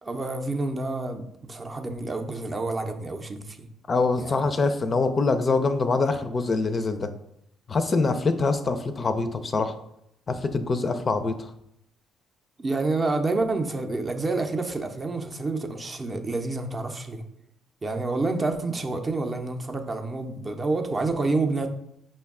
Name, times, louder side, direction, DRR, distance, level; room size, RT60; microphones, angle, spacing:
voice 1, 0.0-3.7 4.2-4.4 12.6-17.2 17.8-21.7, right 3 dB, 30° right, 5 dB, 0.5 m, -28 dB
voice 2, 3.9-7.1 7.7-9.7 10.3-11.5, left 3 dB, 40° left, 9 dB, 0.4 m, -24 dB
5.1 x 2.2 x 3.5 m, 0.77 s
supercardioid pair, 75°, 0 cm